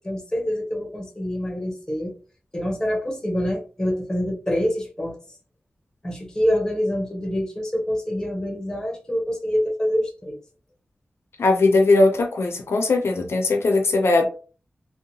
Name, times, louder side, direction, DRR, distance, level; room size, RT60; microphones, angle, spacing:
voice 1, 0.0-2.1 2.5-5.2 6.0-10.4, equal, 15° left, 0 dB, 0.7 m, -26 dB
voice 2, 11.4-14.3, left 3 dB, 80° left, 4 dB, 0.4 m, -19 dB
2.7 x 2.1 x 2.7 m, 0.38 s
wide cardioid pair, 105°, 4 cm